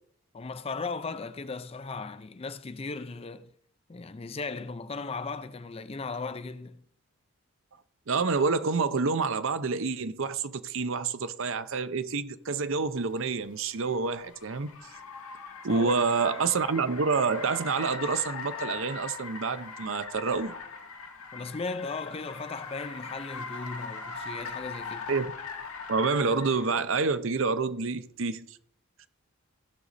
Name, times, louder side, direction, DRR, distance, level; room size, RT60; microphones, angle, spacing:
voice 1, 0.3-3.5 3.9-6.8 15.7-16.0 21.3-25.0, left 4 dB, 25° left, 0.4 m, -37 dB
voice 2, 8.1-14.7 15.6-20.6 25.1-25.3 25.9-28.6, right 4 dB, 60° right, 0.6 m, -28 dB
Car, 13.0-26.9, left 5 dB, 75° left, 1.7 m, -41 dB
16.5 x 6.2 x 4.1 m
head